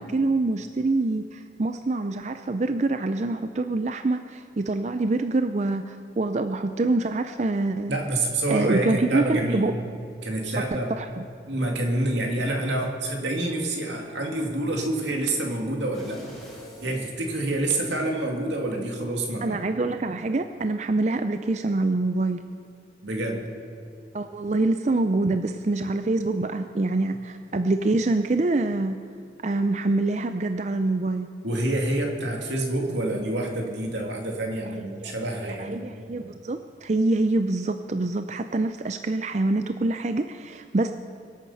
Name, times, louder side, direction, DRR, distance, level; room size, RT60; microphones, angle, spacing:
voice 1, 0.0-8.0 8.5-9.7 10.7-11.2 19.4-22.4 24.1-29.0 29.4-31.3 35.0-35.1 35.5-40.9, right 2 dB, 40° right, 8 dB, 0.5 m, -25 dB
voice 2, 7.9-9.8 10.2-10.9 11.5-16.2 16.8-19.6 23.0-23.4 31.4-35.8, right 1 dB, 85° right, 1 dB, 2.6 m, -27 dB
sound 1, 15.9-18.1 18.5-18.6, equal, ahead, 3.9 m, -46 dB
25.0 x 8.7 x 5.6 m, 2.5 s
head